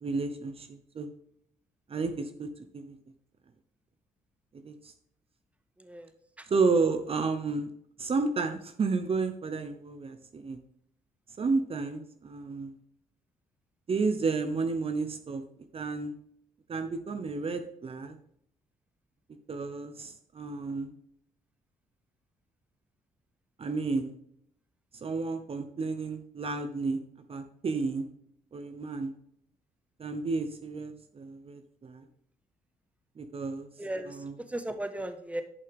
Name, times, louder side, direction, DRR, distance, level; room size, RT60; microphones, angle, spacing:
voice 1, 0.0-1.1 1.9-3.0 4.6-4.9 6.5-7.7 8.0-10.6 11.4-12.7 13.9-15.4 15.7-16.1 16.7-18.2 19.5-20.9 23.6-24.1 25.0-27.0 27.3-28.1 28.5-29.1 30.0-32.0 33.2-33.7 34.1-34.3, right 4 dB, 45° right, 8 dB, 0.8 m, -31 dB
voice 2, 5.8-6.1 6.4-6.5 33.8-35.4, right 1 dB, 10° right, 8 dB, 1.2 m, -36 dB
11.0 x 5.5 x 3.5 m, 0.73 s
cardioid pair, 75°, 14 cm